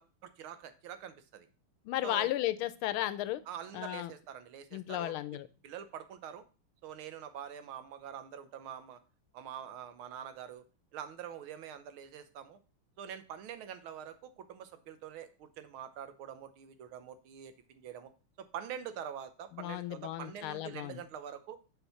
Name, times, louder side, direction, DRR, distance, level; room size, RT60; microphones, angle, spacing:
voice 1, 0.0-1.5 2.0-2.3 3.5-5.1 5.6-6.4 6.8-9.0 9.3-10.6 10.9-12.6 13.0-18.1 18.4-21.6, right 9 dB, 80° right, 11 dB, 1.7 m, -45 dB
voice 2, 1.8-3.4 3.7-4.1 4.7-5.5 19.6-21.0, left 14 dB, 85° left, 15 dB, 1.5 m, -34 dB
7.1 x 4.5 x 5.5 m, 0.34 s
omnidirectional pair, 2.3 m